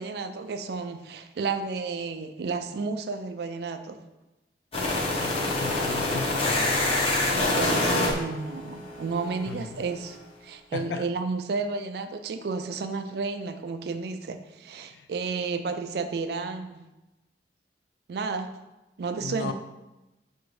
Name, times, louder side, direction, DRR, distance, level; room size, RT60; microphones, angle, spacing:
voice 1, 0.0-4.0 7.3-10.2 10.4-16.8 18.1-18.6 19.0-19.5, right 4 dB, 60° right, 8 dB, 0.3 m, -32 dB
sound 1, 4.7-9.6, left 2 dB, 30° left, 0.6 m, -26 dB
voice 2, 5.2-6.8 9.5-9.8 10.7-11.1 14.9-15.1 19.2-19.5, left 5 dB, 65° left, 9 dB, 0.3 m, -36 dB
6.0 x 2.6 x 3.1 m, 1.0 s
head